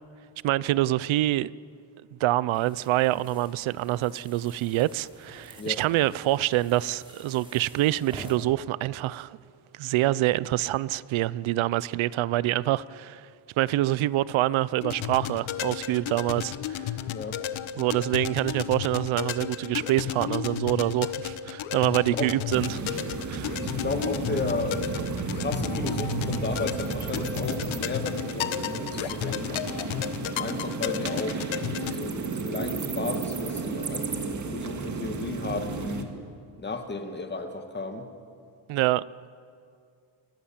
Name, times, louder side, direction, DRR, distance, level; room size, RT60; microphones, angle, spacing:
voice 1, 0.4-1.5 2.2-9.4 9.7-13.3 13.6-16.9 17.8-23.0 23.3-23.6 38.7-39.0, right 15 dB, 85° right, 0.7 m, -26 dB
sound 1, 2.5-8.3, right 1 dB, 10° right, 5.0 m, -49 dB
sound 2, 14.8-31.9, left 11 dB, 85° left, 1.3 m, -33 dB
sound 3, 22.5-36.0, right 5 dB, 40° right, 2.3 m, -33 dB
voice 2, 23.6-24.8 25.1-29.6 30.4-31.6 31.8-36.2 36.6-38.1, left 3 dB, 20° left, 2.1 m, -34 dB
29.5 x 23.5 x 7.3 m
cardioid pair, 150°, 46 cm